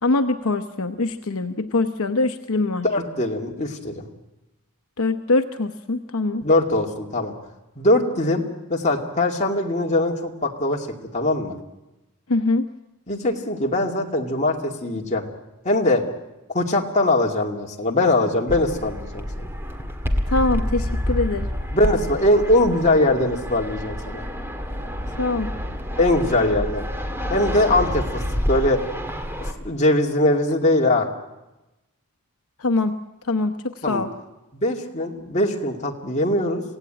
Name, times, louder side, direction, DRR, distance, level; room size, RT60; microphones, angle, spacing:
voice 1, 0.0-2.9 5.0-6.4 12.3-12.7 20.3-21.5 25.2-25.5 32.6-33.0 33.3-34.1, left 3 dB, 70° left, 8 dB, 0.9 m, -23 dB
voice 2, 2.8-4.1 6.4-7.3 7.8-8.4 8.7-10.9 11.1-11.5 13.1-15.3 15.6-16.0 16.5-19.3 21.7-24.2 26.0-26.9 27.3-28.8 29.4-31.1 33.8-34.0 34.5-36.6, left 1 dB, 30° left, 1 dB, 2.4 m, -21 dB
Fixed-wing aircraft airplane, 18.5-29.5, equal, 10° right, 1.8 m, -28 dB
26.5 x 16.5 x 9.0 m, 1.0 s
head